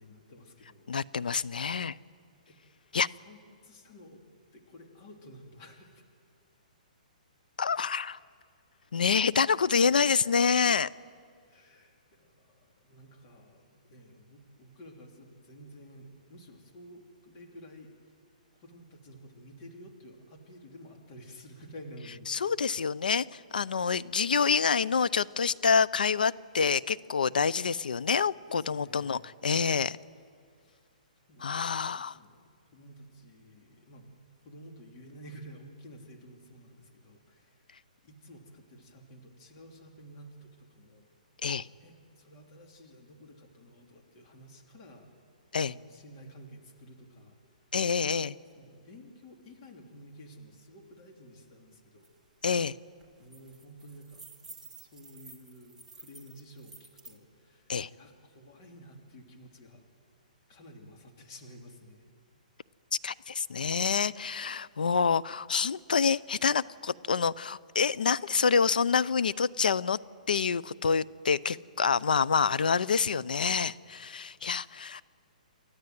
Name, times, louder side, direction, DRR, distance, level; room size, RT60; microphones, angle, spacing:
voice 1, 0.0-0.9 2.5-2.6 3.2-4.2 4.5-6.0 7.6-8.0 11.5-18.1 18.5-22.4 23.7-23.9 28.3-29.3 30.6-30.9 31.3-32.4 32.7-34.1 34.4-37.7 38.0-41.1 41.8-45.1 45.5-47.6 48.5-52.1 53.2-54.2 54.7-59.8 60.5-62.0 73.8-73.9, equal, 35° left, 2 dB, 3.1 m, -52 dB
voice 2, 0.9-2.0 2.9-3.1 7.6-8.2 8.9-10.9 22.3-30.0 31.4-32.2 41.4-41.7 45.5-45.7 47.7-48.3 52.4-52.8 57.7-57.9 63.0-70.0 70.3-75.0, left 6 dB, 90° left, 18 dB, 0.6 m, -27 dB
sound 1, 52.0-52.1 52.4-52.7 53.0-57.2, right 3 dB, 5° right, 1.9 m, -51 dB
28.0 x 13.5 x 9.4 m, 2.2 s
hypercardioid pair, 155°, 5 cm